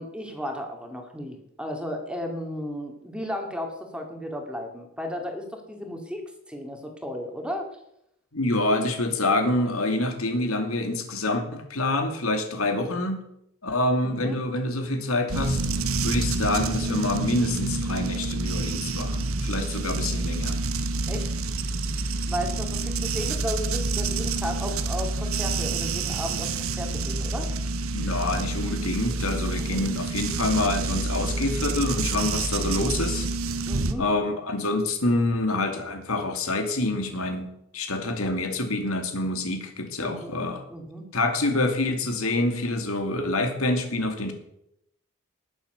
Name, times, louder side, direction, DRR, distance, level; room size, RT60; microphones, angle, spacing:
voice 1, 0.0-7.7 14.0-14.4 21.1-21.3 22.3-27.5 29.6-29.8 33.7-34.0 40.0-40.4 40.7-41.0, equal, 5° right, 3 dB, 2.3 m, -34 dB
voice 2, 8.3-13.2 13.6-15.6 16.0-20.6 27.9-33.3 34.0-40.6 41.1-44.3, left 2 dB, 85° left, 5 dB, 2.5 m, -26 dB
sound 1, 15.3-33.9, right 3 dB, 75° right, 1.1 m, -28 dB
19.5 x 7.4 x 6.8 m, 0.78 s
head